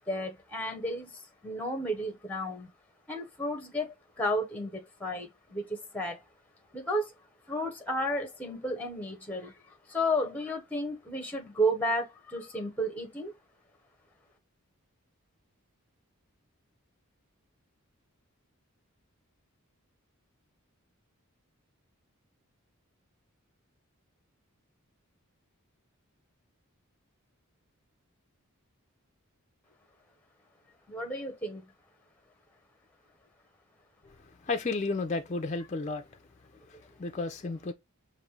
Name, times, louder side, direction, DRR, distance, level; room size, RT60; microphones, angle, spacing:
voice 1, 0.0-2.7 3.1-6.2 6.7-7.1 7.5-13.3 30.9-31.6, equal, 5° left, 0.9 m, -33 dB
voice 2, 34.4-36.1 36.7-37.7, left 3 dB, 30° left, 0.5 m, -33 dB
5.2 x 2.6 x 3.1 m
head